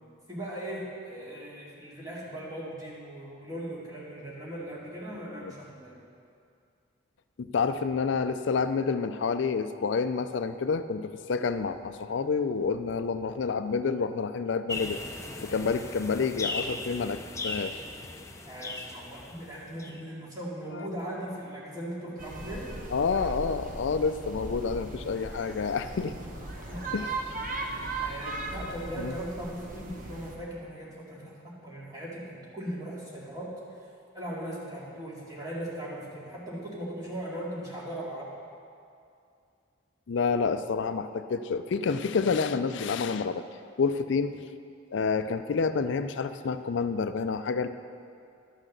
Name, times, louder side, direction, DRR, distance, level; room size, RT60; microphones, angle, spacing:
voice 1, 0.3-6.0 18.4-22.7 26.4-27.1 28.0-33.6 34.1-38.3, right 1 dB, 20° right, -6 dB, 2.4 m, -39 dB
voice 2, 7.4-15.0 15.4-17.9 20.7-20.8 22.9-26.1 26.9-27.1 29.0-29.1 40.1-43.4 43.8-44.4 44.9-47.7, left 5 dB, 60° left, 10 dB, 0.4 m, -28 dB
sound 1, 14.7-20.0, left 2 dB, 15° left, 0.6 m, -38 dB
sound 2, 22.2-30.4, right 2 dB, 40° right, 1.0 m, -38 dB
11.5 x 6.2 x 6.6 m, 2.4 s
head